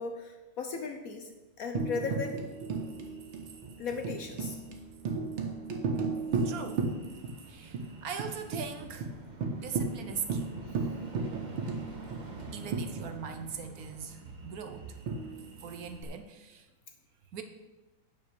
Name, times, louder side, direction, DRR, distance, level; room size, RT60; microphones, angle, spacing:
voice 1, 0.0-1.3 1.6-2.4 3.8-4.6 11.5-11.6, left 4 dB, 60° left, 5 dB, 0.9 m, -36 dB
Tambourine, 1.7-7.4 7.7-7.8 8.2-8.7 9.0-9.1 9.4-13.5 15.1-16.0, right 4 dB, 85° right, 1.9 m, -35 dB
sound 1, 2.5-16.2, right 3 dB, 30° right, 1.1 m, -50 dB
voice 2, 6.4-6.9 7.5-9.1 9.6-10.6 12.2-15.0 15.6-16.7 17.3-17.4, right 6 dB, 60° right, 7 dB, 1.0 m, -40 dB
9.5 x 5.3 x 6.8 m, 1.1 s
omnidirectional pair, 2.1 m